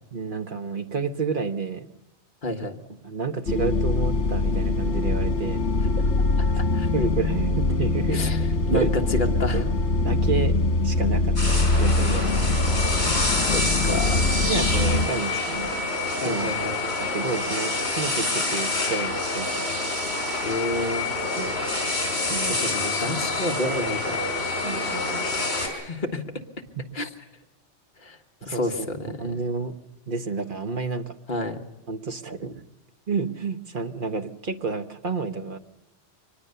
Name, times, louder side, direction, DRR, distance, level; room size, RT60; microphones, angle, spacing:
voice 1, 0.1-1.9 3.0-5.6 6.9-8.2 8.7-8.9 9.5-9.7 10.0-10.6 10.8-12.5 13.7-15.7 16.2-16.5 16.8-19.8 21.4-21.6 22.3-22.6 24.6-25.3 26.8-26.9 28.4-29.7 30.1-31.2 31.9-32.6 33.1-35.6, right 4 dB, 50° right, 8 dB, 1.3 m, -30 dB
voice 2, 2.4-2.8 6.6-6.9 8.1-9.6 13.0-14.3 16.2-16.8 20.4-21.1 22.6-24.3 25.6-26.2 26.9-27.1 28.0-29.2 31.3-31.6, left 2 dB, 45° left, 3 dB, 1.7 m, -30 dB
sound 1, 3.5-15.1, left 2 dB, 80° left, 1.8 m, -23 dB
sound 2, 11.4-25.7, left 2 dB, 65° left, 5.0 m, -27 dB
23.5 x 20.5 x 6.8 m, 0.97 s
omnidirectional pair, 1.2 m